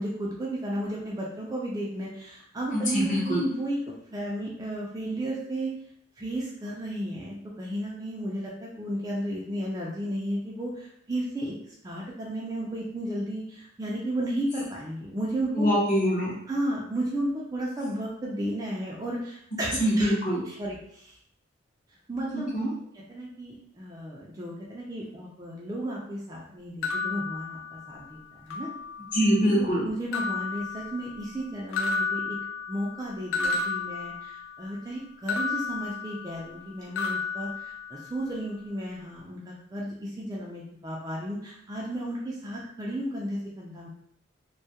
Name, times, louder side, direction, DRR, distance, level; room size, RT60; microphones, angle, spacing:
voice 1, 0.0-3.8 4.1-5.7 6.2-11.5 11.8-15.7 16.5-20.1 20.5-21.2 22.1-22.6 23.1-28.7 29.5-32.4 32.7-43.9, right 1 dB, 20° right, -4 dB, 0.3 m, -33 dB
voice 2, 2.7-3.4 15.6-16.3 19.8-20.4 22.5-22.7 29.1-29.8, equal, 40° left, -4 dB, 0.7 m, -23 dB
sound 1, 26.8-28.1 28.5-29.3 30.1-31.4 31.7-34.7 35.3-36.7 37.0-38.3, left 4 dB, 85° left, 0.4 m, -32 dB
2.2 x 2.0 x 2.7 m, 0.71 s
head